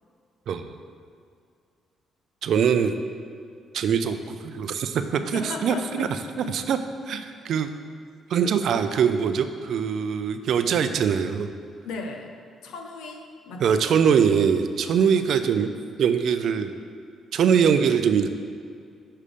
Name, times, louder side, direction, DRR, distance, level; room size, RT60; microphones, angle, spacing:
voice 1, 2.4-2.9 3.7-6.1 6.4-6.8 7.1-7.7 8.3-11.5 13.6-15.7 16.0-16.7 17.3-18.3, right 7 dB, 70° right, 9 dB, 0.4 m, -22 dB
voice 2, 5.2-6.1 11.8-12.3 12.6-13.8, left 3 dB, 85° left, 3 dB, 0.7 m, -36 dB
5.5 x 5.2 x 5.0 m, 2.3 s
cardioid pair, 90°, 0 cm